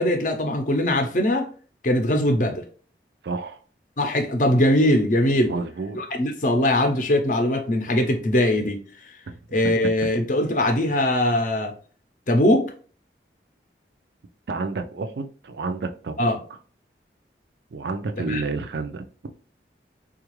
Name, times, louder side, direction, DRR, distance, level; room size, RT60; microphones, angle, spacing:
voice 1, 0.0-1.5 1.8-2.6 4.0-5.5 6.0-8.8 9.5-11.7 12.3-12.6 16.2-16.4 18.3-18.4, left 1 dB, 45° left, 0.6 m, -21 dB
voice 2, 3.2-3.6 5.4-6.0 14.5-16.3 17.7-19.0, right 3 dB, 70° right, 0.4 m, -30 dB
3.8 x 2.4 x 3.0 m
head